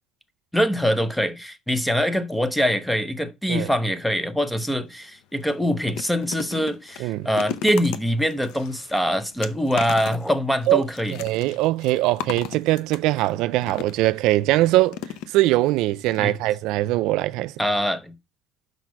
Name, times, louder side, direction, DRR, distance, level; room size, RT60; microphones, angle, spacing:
voice 1, 0.5-11.2 16.2-16.3 17.6-18.1, equal, 5° left, 0.7 m, -24 dB
sound 1, 4.9-5.0 5.4-14.2 14.9-15.7 16.0-16.2 16.4-16.5, left 9 dB, 65° left, 0.8 m, -37 dB
voice 2, 11.2-15.0 15.3-17.5, right 17 dB, 70° right, 0.4 m, -21 dB
6.0 x 5.3 x 4.7 m
cardioid pair, 150°, 0 cm